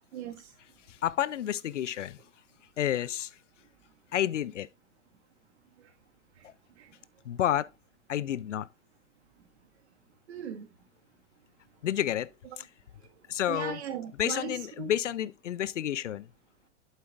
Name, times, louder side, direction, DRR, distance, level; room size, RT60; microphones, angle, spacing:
voice 1, 0.1-0.5 6.8-6.9 10.3-10.7 13.5-14.9, right 9 dB, 70° right, 1.8 m, -38 dB
voice 2, 1.0-2.2 2.8-3.3 4.1-4.7 7.3-7.7 8.1-8.7 11.8-12.3 13.3-13.8 14.2-16.3, left 11 dB, 85° left, 0.5 m, -30 dB
8.5 x 7.4 x 2.5 m
hypercardioid pair, 100°, 35 cm